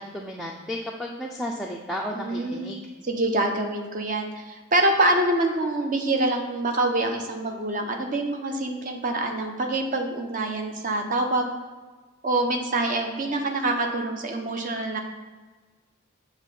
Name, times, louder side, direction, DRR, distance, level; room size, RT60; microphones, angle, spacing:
voice 1, 0.0-2.9, equal, ahead, -1 dB, 0.3 m, -33 dB
voice 2, 2.2-2.7 3.0-11.5 12.2-15.0, right 2 dB, 40° right, 3 dB, 0.7 m, -25 dB
7.2 x 3.0 x 5.6 m, 1.3 s
head